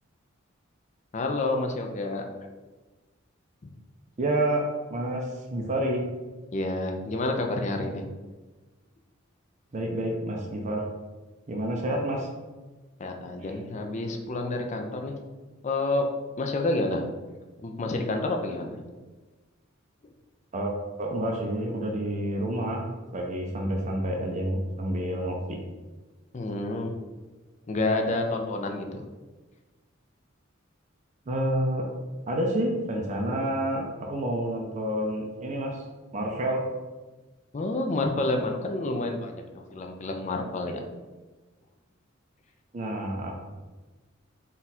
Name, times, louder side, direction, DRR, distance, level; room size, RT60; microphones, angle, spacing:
voice 1, 1.1-2.3 3.6-3.7 6.5-8.0 13.0-15.1 15.6-16.1 16.4-17.1 17.6-18.8 26.3-27.0 27.7-29.0 37.5-40.8, left 2 dB, 35° left, 3 dB, 0.4 m, -29 dB
voice 2, 4.2-4.6 4.9-6.0 9.7-10.8 11.5-12.3 13.4-13.5 20.5-20.7 21.0-22.8 23.1-25.6 31.3-31.9 32.3-35.8 36.1-36.6 42.7-43.3, right 1 dB, 35° right, 0 dB, 0.5 m, -29 dB
4.0 x 2.4 x 4.1 m, 1.2 s
head